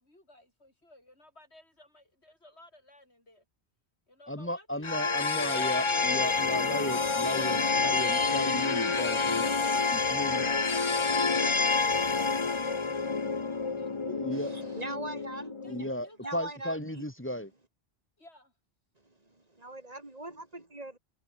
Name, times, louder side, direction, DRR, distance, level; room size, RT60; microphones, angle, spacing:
voice 1, 0.0-3.4 4.1-7.9 9.3-14.8 15.6-16.4 18.2-18.5, left 1 dB, 90° left, 7.8 m, -57 dB
voice 2, 4.3-9.5 9.9-10.5 14.1-14.5 15.7-17.5, left 1 dB, 10° left, 2.3 m, -35 dB
sound 1, 4.8-15.9, left 4 dB, 30° left, 1.0 m, -28 dB
voice 3, 14.3-15.9 16.2-17.0 19.0-21.0, right 2 dB, 35° right, 3.4 m, -41 dB
omnidirectional pair, 1.1 m